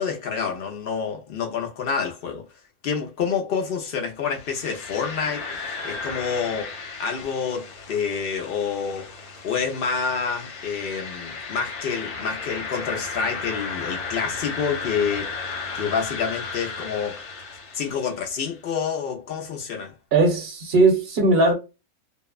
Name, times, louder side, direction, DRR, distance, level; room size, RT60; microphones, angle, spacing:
voice 1, 0.0-2.4 2.8-6.7 7.0-9.1 9.4-15.3 15.7-17.2 17.7-19.9, left 6 dB, 85° left, 0.5 m, -28 dB
sound 1, 4.3-18.3, left 4 dB, 55° left, 1.0 m, -35 dB
voice 2, 20.1-21.5, right 2 dB, 50° right, 0.9 m, -18 dB
2.7 x 2.1 x 2.2 m
omnidirectional pair, 1.6 m